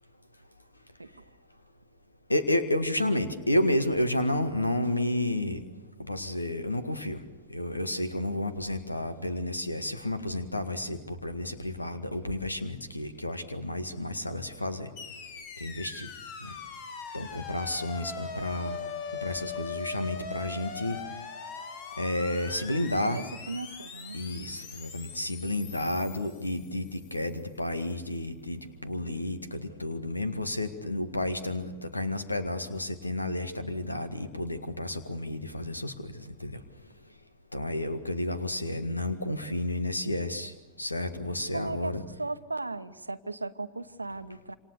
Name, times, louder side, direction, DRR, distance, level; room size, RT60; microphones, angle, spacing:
voice 1, 2.3-5.6 6.1-7.2 7.5-14.9 15.6-16.1 16.4-16.6 17.1-18.8 19.2-21.0 22.0-23.2 24.1-36.6 37.5-40.5 40.8-42.0, left 1 dB, 85° left, 10 dB, 1.9 m, -31 dB
sound 1, 15.0-27.2, left 5 dB, 45° left, 2.3 m, -41 dB
voice 2, 23.0-24.2 41.5-44.6, right 3 dB, 85° right, 13 dB, 1.0 m, -36 dB
27.5 x 26.0 x 6.9 m, 1.1 s
figure-of-eight pair, 90°, 0 cm